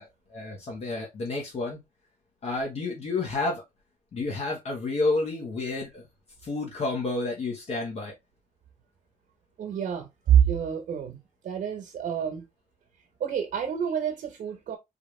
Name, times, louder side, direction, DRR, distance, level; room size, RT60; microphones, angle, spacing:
voice 1, 0.0-1.8 2.4-3.6 4.1-6.1 6.4-8.1, left 3 dB, 50° left, 1.5 m, -30 dB
voice 2, 9.6-12.4 13.2-14.8, right 9 dB, 75° right, 1.2 m, -27 dB
4.6 x 3.4 x 3.3 m
cardioid pair, 160°, 14 cm